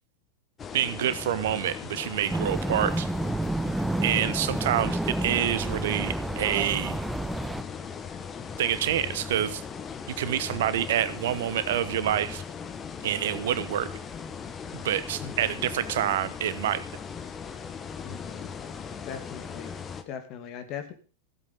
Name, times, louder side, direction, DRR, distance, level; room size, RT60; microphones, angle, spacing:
sound 1, 0.6-20.0, left 6 dB, 20° left, 1.4 m, -38 dB
voice 1, 0.7-3.1 4.0-7.0 8.6-9.6 10.1-12.4 13.0-13.9 14.7-16.8, right 11 dB, 55° right, 15 dB, 1.0 m, -27 dB
sound 2, 2.3-7.6, right 2 dB, 5° right, 0.6 m, -30 dB
voice 2, 15.2-15.7 18.0-18.5 19.0-19.7 20.1-20.9, left 8 dB, 40° left, 7 dB, 2.5 m, -40 dB
16.0 x 8.3 x 5.4 m, 0.38 s
figure-of-eight pair, 90°, 0 cm